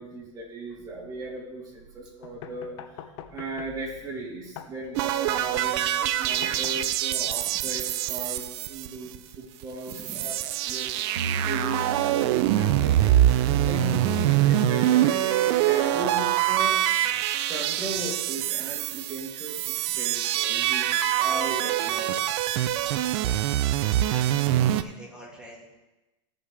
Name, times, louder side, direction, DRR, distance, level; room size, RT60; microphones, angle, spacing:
voice 1, 0.0-3.0 3.3-16.8 17.5-22.2, right 2 dB, 20° right, -4 dB, 3.1 m, -37 dB
sound 1, 2.2-7.2, left 9 dB, 65° left, 0.8 m, -45 dB
sound 2, 4.9-9.3 9.6-9.7 9.9-24.8, right 12 dB, 55° right, 0.6 m, -24 dB
voice 2, 9.9-10.3 23.0-23.8 24.1-25.7, right 1 dB, 5° right, -4 dB, 2.6 m, -46 dB
sound 3, 11.2-14.4, right 2 dB, 85° right, 1.0 m, -36 dB
15.5 x 5.9 x 3.4 m, 1.1 s
hypercardioid pair, 115°, 16 cm